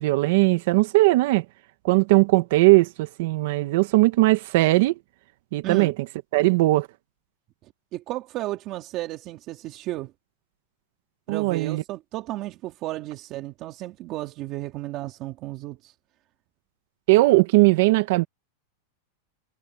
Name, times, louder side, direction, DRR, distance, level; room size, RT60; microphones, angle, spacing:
voice 1, 0.0-1.4 1.8-4.9 5.5-5.9 6.3-6.9 11.3-11.8 17.1-18.2, right 21 dB, 60° right, 1.1 m, -19 dB
voice 2, 5.6-5.9 7.6-10.1 11.3-15.9, right 16 dB, 35° right, 2.3 m, -33 dB
supercardioid pair, 150°, 0 cm